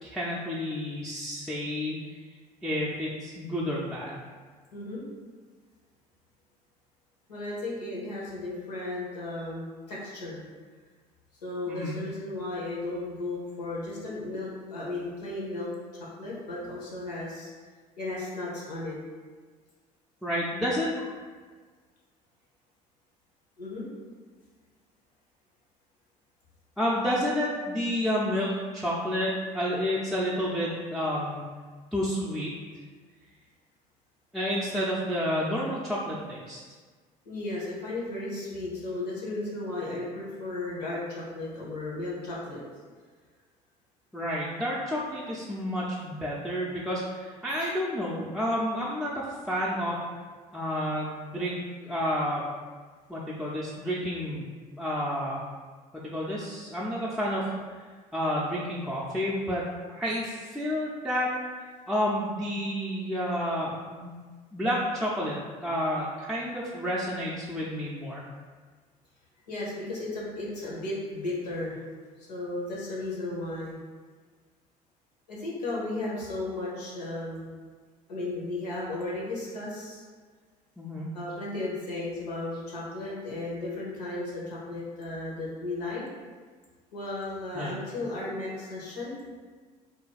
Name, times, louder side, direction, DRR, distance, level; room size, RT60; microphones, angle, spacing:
voice 1, 0.0-2.2 2.6-4.1 11.7-12.0 20.2-21.1 26.8-31.4 31.9-32.5 34.3-36.6 44.1-50.0 50.5-51.6 51.8-52.4 53.1-54.4 54.8-55.4 55.9-57.5 58.1-59.6 59.9-61.3 61.9-64.2 64.5-68.2 80.8-81.1 87.5-87.7, equal, ahead, -7 dB, 0.5 m, -30 dB
voice 2, 4.7-5.0 7.3-10.4 11.4-17.5 18.0-19.0 23.6-23.8 37.2-42.6 69.5-71.9 72.2-73.8 75.3-77.5 78.1-80.0 81.1-86.0 86.9-89.1, left 2 dB, 90° left, -5 dB, 0.8 m, -35 dB
2.5 x 2.2 x 4.0 m, 1.5 s
hypercardioid pair, 60°, 20 cm